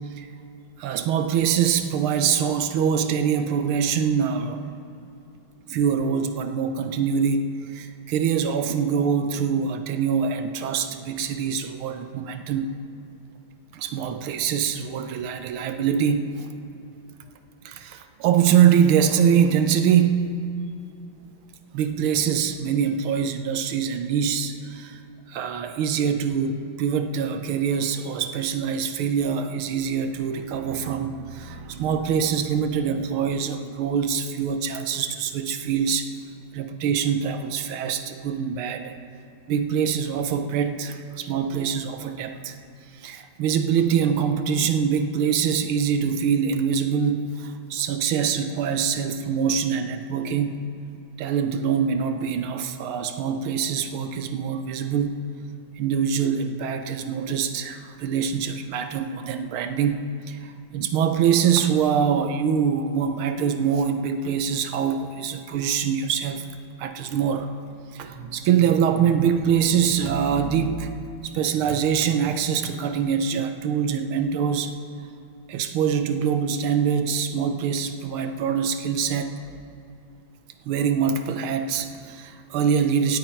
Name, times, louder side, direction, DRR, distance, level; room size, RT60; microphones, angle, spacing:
voice 1, 0.8-4.7 5.7-12.7 13.7-16.5 17.6-20.3 21.7-25.0 25.3-36.1 36.5-39.0 39.5-42.6 43.0-50.6 51.2-55.2 55.8-66.5 66.8-67.5 67.9-70.9 71.2-74.7 75.5-79.4 80.7-83.2, right 7 dB, 90° right, 8 dB, 1.7 m, -24 dB
17.0 x 9.0 x 4.5 m, 2.7 s
omnidirectional pair, 2.2 m